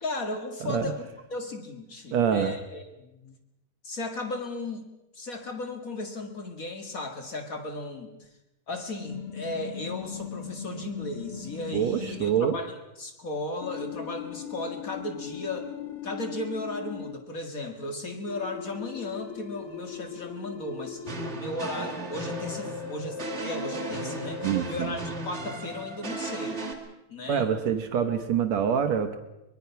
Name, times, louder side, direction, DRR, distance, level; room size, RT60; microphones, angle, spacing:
voice 1, 0.0-3.4 3.8-4.8 5.1-8.1 8.7-15.7 16.0-26.6 27.1-27.5, left 2 dB, 55° left, 6 dB, 0.9 m, -36 dB
voice 2, 0.6-0.9 2.1-2.5 11.7-12.6 24.4-25.0 27.3-29.2, right 8 dB, 75° right, 7 dB, 1.6 m, -26 dB
sound 1, 9.0-12.5 13.6-17.1 18.3-21.4 22.1-24.5, left 8 dB, 85° left, 1.2 m, -39 dB
sound 2, 21.1-26.7, right 2 dB, 20° right, 1.9 m, -36 dB
24.0 x 22.0 x 5.8 m, 0.94 s
omnidirectional pair, 4.7 m